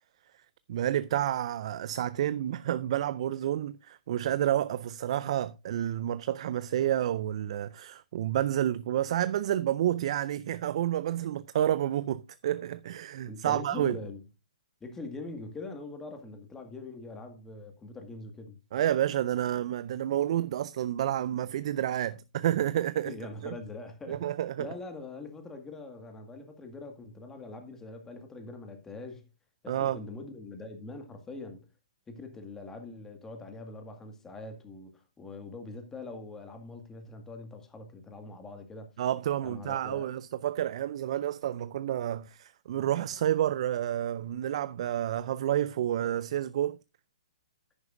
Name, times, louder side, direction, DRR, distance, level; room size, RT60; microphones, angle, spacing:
voice 1, 0.7-14.0 18.7-23.1 23.4-23.6 24.1-24.7 29.7-30.0 39.0-46.8, right 11 dB, 55° right, 0.4 m, -29 dB
voice 2, 13.3-14.2 14.8-18.6 23.0-24.2 24.6-29.3 29.6-31.7 32.1-38.9 39.4-40.1, left 3 dB, 10° left, 1.8 m, -43 dB
10.5 x 9.7 x 2.6 m
hypercardioid pair, 145°, 4 cm